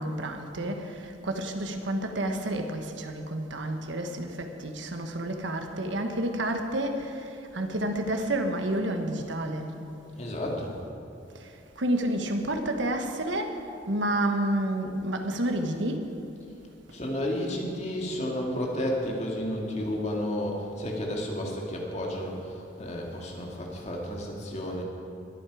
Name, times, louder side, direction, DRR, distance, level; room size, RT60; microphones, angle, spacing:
voice 1, 0.0-9.8 11.4-11.5 11.8-16.1, right 1 dB, 75° right, 5 dB, 1.3 m, -30 dB
voice 2, 10.2-10.7 16.9-24.8, left 1 dB, 35° left, -1 dB, 2.2 m, -32 dB
21.5 x 9.1 x 4.9 m, 2.7 s
head